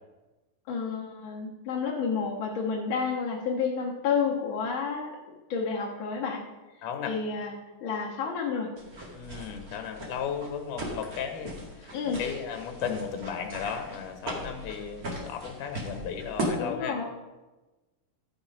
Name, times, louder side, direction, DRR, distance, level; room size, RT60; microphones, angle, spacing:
voice 1, 0.7-6.4 7.0-7.5 7.8-8.7 11.9-12.3 16.6-17.0, left 5 dB, 50° left, -3 dB, 1.7 m, -30 dB
voice 2, 6.8-7.1 9.1-17.0, left 7 dB, 75° left, 5 dB, 2.6 m, -35 dB
sound 1, 8.8-16.4, right 1 dB, 35° right, 1.8 m, -39 dB
13.0 x 5.9 x 5.3 m, 1.1 s
omnidirectional pair, 3.8 m